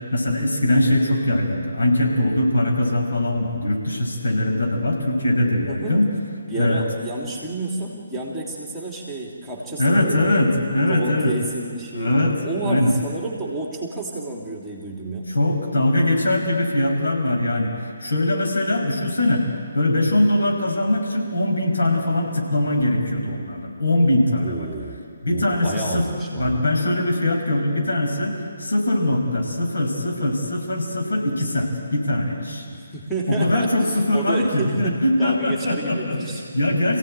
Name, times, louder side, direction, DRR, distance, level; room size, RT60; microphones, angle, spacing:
voice 1, 0.1-6.1 6.5-6.8 9.8-11.3 11.9-13.0 15.3-19.5 19.7-24.7 25.2-32.7 33.3-36.2 36.5-37.0, left 1 dB, 60° left, 0 dB, 6.0 m, -21 dB
voice 2, 5.7-6.0 6.5-10.4 10.8-12.1 12.4-15.3 24.4-26.6 32.7-36.4, right 2 dB, ahead, -2 dB, 3.2 m, -30 dB
27.0 x 16.5 x 9.1 m, 2.1 s
figure-of-eight pair, 140°, 0 cm